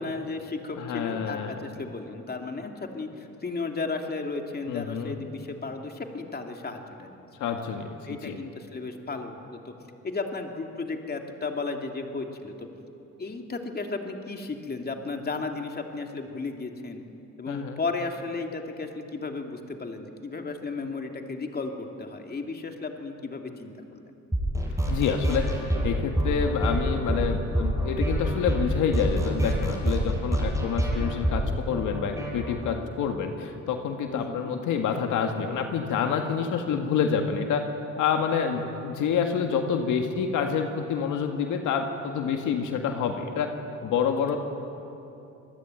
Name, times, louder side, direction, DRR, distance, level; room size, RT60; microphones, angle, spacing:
voice 1, 0.0-7.3 7.5-7.6 8.1-9.7 10.0-12.7 13.2-17.0 17.4-24.0 34.1-34.6, left 3 dB, 30° left, 3 dB, 2.9 m, -34 dB
voice 2, 0.8-1.6 4.7-5.2 7.4-8.4 17.5-17.8 24.9-37.6 38.0-43.5 43.8-44.4, left 6 dB, 85° left, 4 dB, 2.0 m, -28 dB
sound 1, 24.3-32.7, equal, 10° right, 7.0 m, -27 dB
26.0 x 20.0 x 9.6 m, 2.9 s
cardioid pair, 90°, 30 cm